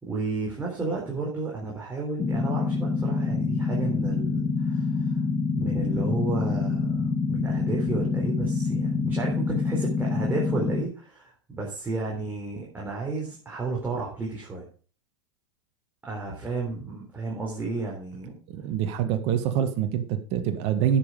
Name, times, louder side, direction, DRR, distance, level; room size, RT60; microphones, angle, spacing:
voice 1, 0.0-5.1 5.5-14.6 16.0-18.4, right 3 dB, 15° right, -3 dB, 4.0 m, -32 dB
sound 1, 2.2-10.8, left 4 dB, 20° left, 2.1 m, -26 dB
voice 2, 18.5-21.0, right 9 dB, 45° right, 7 dB, 1.7 m, -25 dB
9.9 x 7.6 x 5.1 m, 0.41 s
hypercardioid pair, 105°, 15 cm